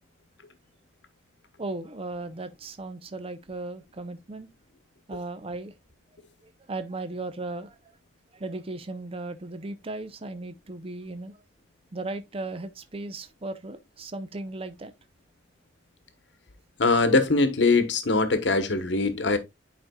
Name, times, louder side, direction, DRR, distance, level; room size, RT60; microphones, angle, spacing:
voice 1, 1.6-4.5 5.1-5.7 6.4-7.9 8.3-11.3 11.9-14.9, right 2 dB, 30° right, 0.6 m, -36 dB
voice 2, 16.8-19.4, left 3 dB, 70° left, 1.1 m, -22 dB
9.8 x 5.1 x 2.2 m
head